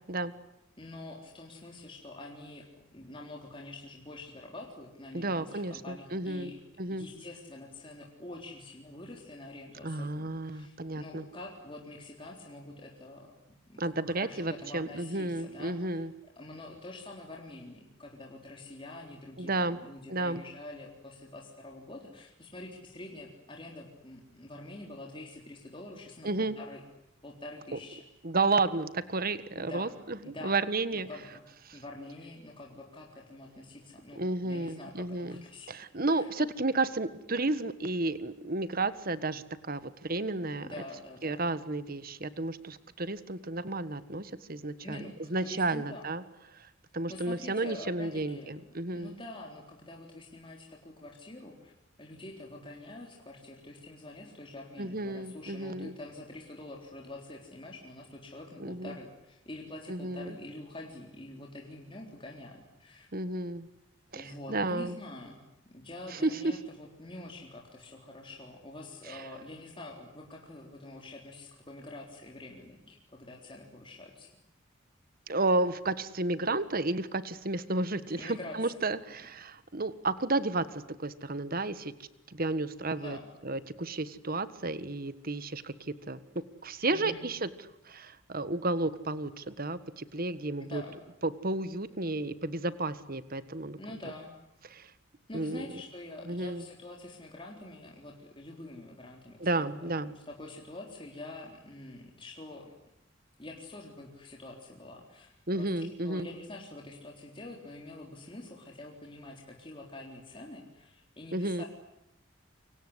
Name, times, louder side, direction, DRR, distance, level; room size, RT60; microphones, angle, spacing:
voice 1, 0.8-2.6 2.9-6.6 6.9-16.1 16.4-26.8 27.2-28.0 29.5-30.0 30.2-30.6 30.9-31.4 31.7-35.7 36.1-36.3 40.6-41.4 44.8-45.1 45.4-46.1 47.1-48.5 48.9-51.7 52.0-63.1 64.1-65.4 65.7-74.3 77.9-78.8 83.0-83.3 86.9-87.3 90.6-91.0 93.8-94.3 95.3-99.7 100.1-102.7 103.4-111.6, left 2 dB, 25° left, 0 dB, 3.8 m, -46 dB
voice 2, 5.1-6.5 6.8-7.0 9.8-11.2 13.8-16.1 19.4-19.8 20.1-20.4 26.2-26.5 27.7-27.8 28.2-31.1 31.6-31.8 34.1-40.7 41.2-46.2 46.5-49.1 54.8-55.9 58.6-58.9 59.9-60.3 63.1-63.7 64.1-65.0 66.1-66.5 69.1-69.2 75.3-81.9 82.3-83.2 83.4-86.2 86.6-87.5 87.8-90.8 91.2-93.8 94.7-94.9 95.3-95.7 96.2-96.6 99.4-100.1 105.5-106.3 111.3-111.6, right 2 dB, 45° right, 14 dB, 1.6 m, -32 dB
28.5 x 25.0 x 8.1 m, 0.84 s
head